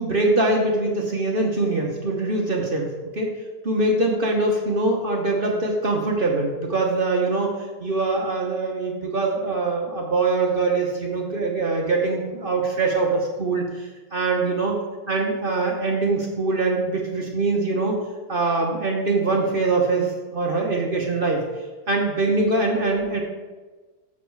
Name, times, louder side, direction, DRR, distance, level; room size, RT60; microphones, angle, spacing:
voice 1, 0.0-3.3 3.6-7.5 7.8-13.6 14.1-14.7 15.1-18.0 18.3-21.4 21.9-23.2, right 3 dB, 40° right, 0 dB, 0.9 m, -23 dB
7.2 x 6.7 x 4.7 m, 1.3 s
omnidirectional pair, 1.9 m